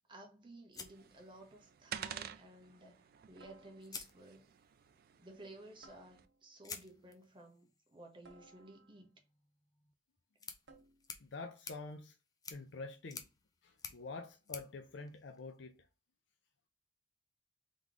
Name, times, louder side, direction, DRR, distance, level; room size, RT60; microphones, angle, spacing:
voice 1, 0.1-4.5 5.2-9.1, right 1 dB, 25° right, 1.0 m, -55 dB
sound 1, 0.7-1.9 3.2-3.3 3.8-4.8 6.6-15.8, left 5 dB, 20° left, 0.5 m, -53 dB
sound 2, 0.8-6.3, right 9 dB, 55° right, 0.4 m, -50 dB
sound 3, 1.6-1.9 3.4-4.2 5.8-6.6 8.2-9.2 10.7-11.2, right 3 dB, 80° right, 0.8 m, -63 dB
voice 2, 11.2-12.2 12.5-13.2 13.6-15.8, left 3 dB, 80° left, 0.5 m, -47 dB
3.6 x 3.0 x 3.9 m
head